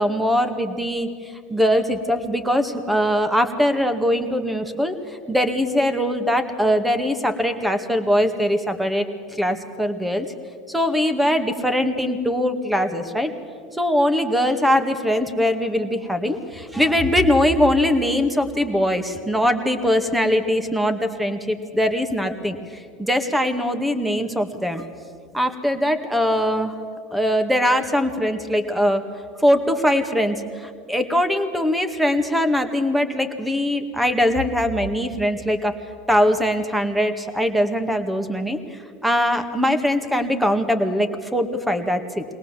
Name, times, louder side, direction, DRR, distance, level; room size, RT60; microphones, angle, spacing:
voice 1, 0.0-5.0 5.3-10.3 10.7-13.3 13.7-22.6 23.0-24.8 25.3-26.7 27.1-29.0 29.4-35.7 36.1-42.2, equal, 5° right, 8 dB, 1.9 m, -21 dB
22.0 x 18.5 x 7.4 m, 2.2 s
hypercardioid pair, 90°, 0 cm